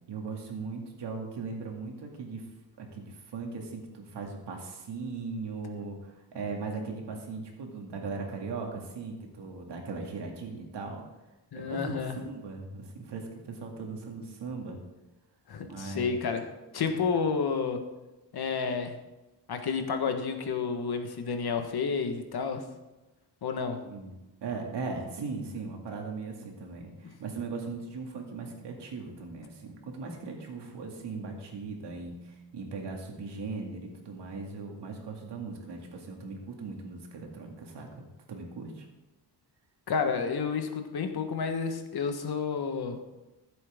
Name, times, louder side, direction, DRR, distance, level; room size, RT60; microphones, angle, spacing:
voice 1, 0.1-2.5 2.8-11.0 11.5-14.8 15.6-16.2 16.8-16.9 23.8-38.9, right 4 dB, 75° right, 1 dB, 2.3 m, -39 dB
voice 2, 11.5-12.2 15.5-16.4 16.7-17.8 18.3-19.0 19.5-22.6 23.4-23.8 39.9-43.0, left 5 dB, 60° left, 6 dB, 1.4 m, -30 dB
14.0 x 7.8 x 3.6 m, 1.0 s
cardioid pair, 115°, 42 cm